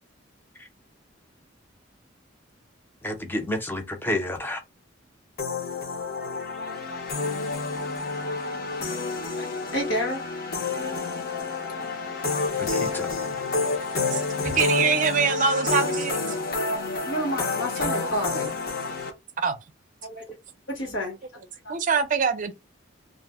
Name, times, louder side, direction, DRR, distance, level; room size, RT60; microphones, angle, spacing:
voice 1, 3.0-4.6 12.6-13.2, left 1 dB, 10° left, 0.5 m, -30 dB
sound 1, 5.4-19.1, left 3 dB, 50° left, 0.7 m, -29 dB
voice 2, 9.4-10.2 10.8-10.9 12.3-13.1 13.3-13.8 14.1-14.7 16.3-16.4 17.1-18.5 20.0-20.3 20.7-21.2 21.6-21.8, equal, 70° left, 1.2 m, -31 dB
voice 3, 14.1-16.2 19.4-19.6 21.7-22.6, right 5 dB, 45° right, 0.5 m, -24 dB
2.5 x 2.0 x 3.4 m
head